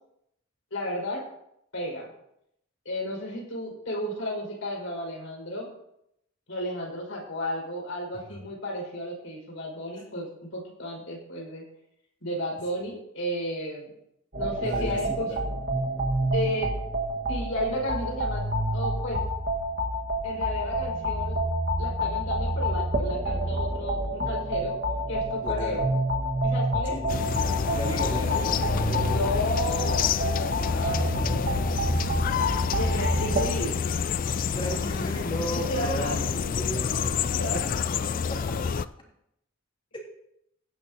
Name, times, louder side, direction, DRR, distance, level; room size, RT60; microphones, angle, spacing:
voice 1, 0.7-1.2 1.7-2.1 2.8-5.7 6.5-11.6 12.2-13.9 14.4-15.3 16.3-16.7 17.3-18.4 18.7-19.2 20.2-21.4 21.8-24.7 25.1-25.8 26.4-26.9 27.9-28.5 29.0-30.1 30.6-31.6 32.7-33.8 35.5-36.1 37.4-37.8, left 1 dB, 75° left, -2 dB, 4.9 m, -33 dB
sound 1, 14.3-33.5, right 1 dB, 50° right, 1.5 m, -28 dB
voice 2, 14.6-15.4 25.4-25.9 26.9-29.4 31.2-31.4 34.5-37.6 38.1-38.5 39.9-40.0, equal, 25° left, -2 dB, 3.0 m, -35 dB
sound 2, 27.1-38.9, left 6 dB, 40° left, 0.3 m, -28 dB
16.5 x 11.0 x 2.8 m, 0.78 s
head